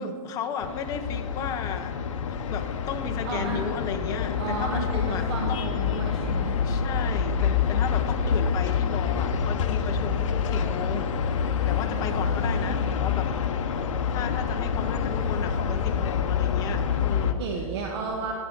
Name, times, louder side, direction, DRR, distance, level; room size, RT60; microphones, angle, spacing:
voice 1, 0.0-1.9 2.3-5.7 6.6-11.1 11.7-13.3 14.1-17.4, left 7 dB, 20° left, 6 dB, 0.7 m, -34 dB
sound 1, 0.6-17.3, left 6 dB, 60° left, 0.8 m, -27 dB
voice 2, 3.3-3.6 4.4-6.5 11.9-12.7 17.4-18.3, right 4 dB, 45° right, 0 dB, 1.2 m, -33 dB
13.5 x 9.5 x 3.9 m, 2.5 s
hypercardioid pair, 150°, 19 cm